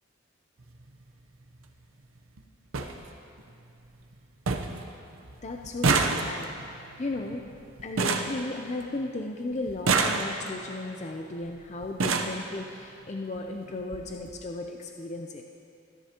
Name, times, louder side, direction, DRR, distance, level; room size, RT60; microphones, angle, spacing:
sound 1, 0.6-0.8 2.0-2.1 2.4-2.5 2.7-2.9 3.4-3.9 4.1-4.2 4.5-4.8 5.1-9.1 9.7-10.6 11.4-11.5 11.8-12.4 13.4-13.5 13.8-14.0 14.3-14.4, right 4 dB, 80° right, 0.8 m, -28 dB
voice 1, 5.4-6.5 7.0-7.4 7.8-15.4, left 2 dB, 35° left, 2 dB, 0.5 m, -35 dB
22.5 x 10.5 x 2.9 m, 2.7 s
head